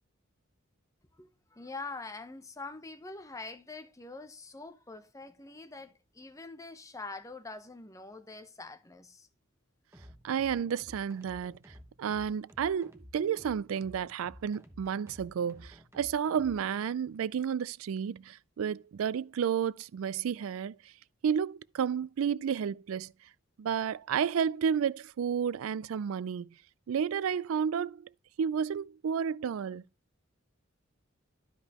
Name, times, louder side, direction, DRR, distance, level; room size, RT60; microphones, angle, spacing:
voice 1, 1.2-9.3, left 3 dB, 15° left, 0.7 m, -44 dB
sound 1, 9.9-16.7, equal, 15° right, 1.0 m, -53 dB
voice 2, 10.2-11.6 12.0-20.8 21.2-23.1 23.6-26.5 26.9-28.1 28.4-29.8, right 7 dB, 85° right, 0.4 m, -31 dB
12.5 x 5.4 x 2.9 m
head